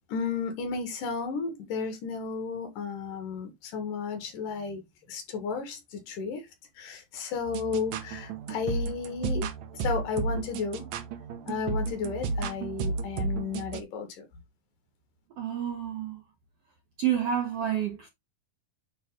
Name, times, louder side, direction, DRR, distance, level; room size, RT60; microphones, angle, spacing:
voice 1, 0.1-4.8 5.1-6.5 6.7-9.5 9.7-10.9 11.4-14.2, left 5 dB, 65° left, 3.0 m, -33 dB
sound 1, 7.4-13.8, right 4 dB, 90° right, 1.6 m, -33 dB
voice 2, 15.4-16.2 17.0-18.1, right 9 dB, 70° right, 1.5 m, -29 dB
9.2 x 3.6 x 3.6 m
omnidirectional pair, 4.3 m